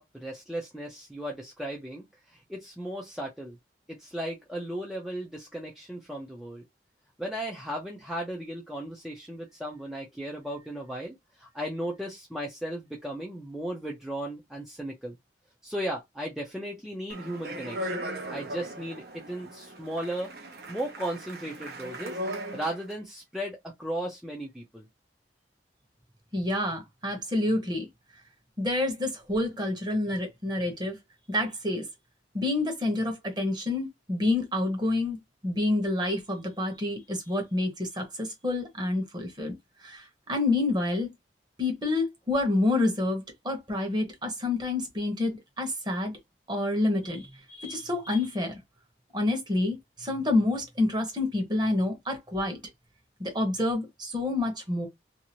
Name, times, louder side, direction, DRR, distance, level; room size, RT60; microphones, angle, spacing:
voice 1, 0.0-3.6 3.9-6.6 7.2-15.2 15.6-24.8, right 1 dB, ahead, 0.5 m, -36 dB
Speech, 17.1-22.9, right 1 dB, 60° right, 0.8 m, -38 dB
voice 2, 26.3-27.9 28.6-31.0 31.3-31.8 32.3-39.5 39.8-41.1 41.6-46.1 46.5-47.3 47.6-48.6 49.1-52.6 53.2-54.9, left 2 dB, 25° right, 1.0 m, -28 dB
2.7 x 2.5 x 2.9 m
head